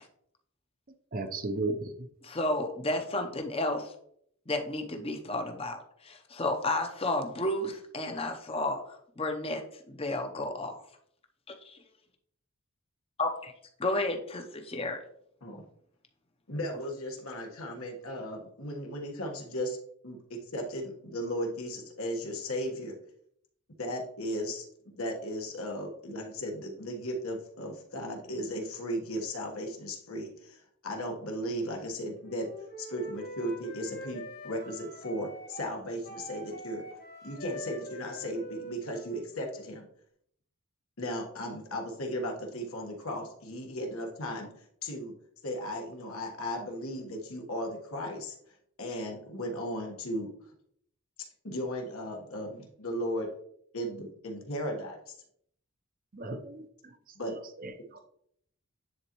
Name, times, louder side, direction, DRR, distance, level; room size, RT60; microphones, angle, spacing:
voice 1, 1.1-1.9 56.1-56.6 57.2-57.3 57.6-58.0, right 2 dB, 40° right, 8 dB, 0.6 m, -34 dB
voice 2, 2.2-3.9 4.5-10.8 13.2-13.5 13.8-15.0, left 2 dB, 25° left, 5 dB, 0.7 m, -32 dB
voice 3, 16.5-19.8 20.0-22.9 23.8-32.5 32.8-36.8 37.2-39.9 41.0-45.1 45.4-48.3 48.8-50.3 51.4-53.3 53.7-55.1 57.1-57.3, equal, 75° left, 1 dB, 1.5 m, -36 dB
Wind instrument woodwind instrument, 32.2-39.7, equal, 45° left, 1.4 m, -44 dB
10.0 x 4.1 x 3.0 m, 0.68 s
head